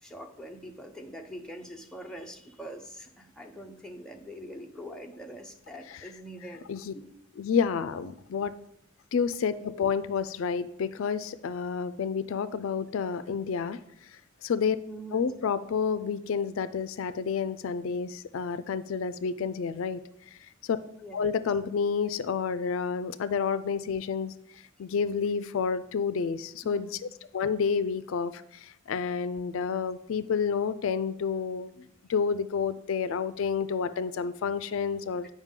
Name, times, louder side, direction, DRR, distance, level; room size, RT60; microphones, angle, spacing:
voice 1, 0.0-6.7 6.9-7.2 14.9-15.4 21.0-21.5 26.6-27.0, equal, 5° left, 1 dB, 0.7 m, -44 dB
voice 2, 7.4-8.6 9.1-13.8 14.4-14.8 15.1-20.0 20.6-20.8 21.1-24.3 24.8-27.1 27.3-35.3, left 6 dB, 70° left, 13 dB, 0.4 m, -29 dB
8.9 x 5.3 x 3.7 m, 0.76 s
head